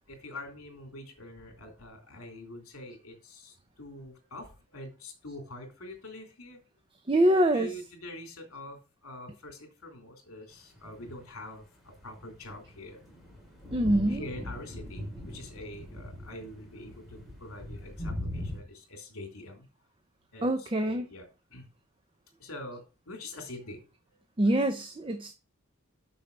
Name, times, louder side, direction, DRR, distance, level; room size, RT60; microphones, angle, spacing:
voice 1, 0.1-6.6 7.5-13.0 14.1-19.7 20.3-21.7 22.4-23.8, left 1 dB, 70° left, 3.0 m, -45 dB
voice 2, 7.1-7.8 13.7-14.3 20.4-21.1 24.4-25.3, right 1 dB, 25° right, 0.7 m, -25 dB
sound 1, 10.8-11.3 12.2-18.6, left 1 dB, ahead, 3.4 m, -40 dB
6.8 x 6.4 x 5.4 m
head